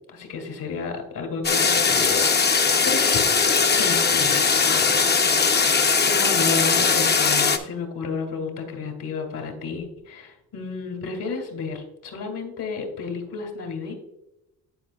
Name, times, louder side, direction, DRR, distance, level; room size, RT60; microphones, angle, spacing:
voice 1, 0.1-5.1 5.4-13.9, left 4 dB, 75° left, 3 dB, 2.4 m, -32 dB
sound 1, 1.4-7.6, left 5 dB, 30° left, 0.8 m, -20 dB
11.0 x 5.0 x 2.3 m, 0.90 s
cardioid pair, 85°, 33 cm